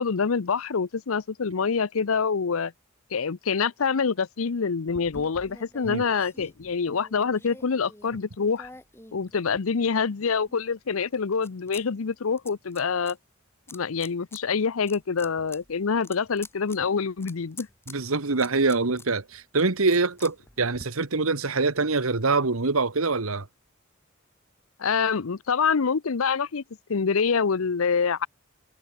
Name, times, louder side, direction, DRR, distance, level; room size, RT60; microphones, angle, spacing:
voice 1, 0.0-2.7 3.1-8.7 9.1-13.2 13.7-17.7 24.8-26.6 26.9-28.3, left 5 dB, 80° left, 0.7 m, -26 dB
sound 1, 4.9-9.9 10.4-11.8 12.1-13.1 13.7-14.4 14.8-20.8, left 2 dB, 10° left, 4.5 m, -48 dB
voice 2, 17.9-23.5, right 3 dB, 85° right, 1.5 m, -24 dB
head